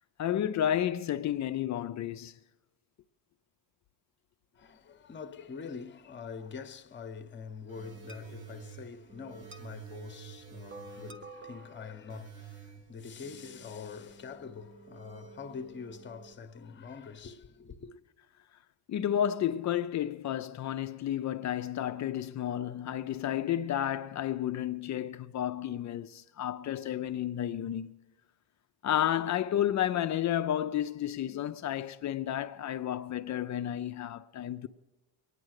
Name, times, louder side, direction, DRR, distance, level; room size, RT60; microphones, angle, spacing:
voice 1, 0.2-2.3 18.9-27.9 28.8-34.7, left 11 dB, 45° left, 0.5 m, -31 dB
voice 2, 4.5-17.9, left 6 dB, 30° left, 0.8 m, -45 dB
sound 1, 7.7-16.3, right 6 dB, 30° right, 0.9 m, -49 dB
22.5 x 9.8 x 6.5 m
cardioid pair, 180°, 40 cm